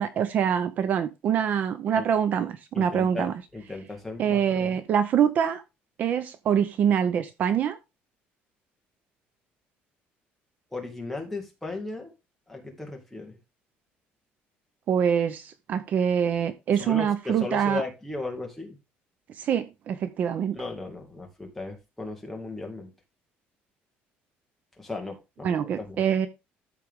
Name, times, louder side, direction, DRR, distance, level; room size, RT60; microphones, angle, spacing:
voice 1, 0.0-3.4 4.2-5.6 6.0-7.8 14.9-17.8 19.4-20.6 25.4-26.3, right 8 dB, 45° right, 0.7 m, -25 dB
voice 2, 2.7-4.8 10.7-12.1 12.5-13.4 16.8-18.8 20.5-22.9 24.8-25.5 25.9-26.0, left 3 dB, 5° left, 2.2 m, -36 dB
13.5 x 4.6 x 3.7 m
cardioid pair, 165°, 4 cm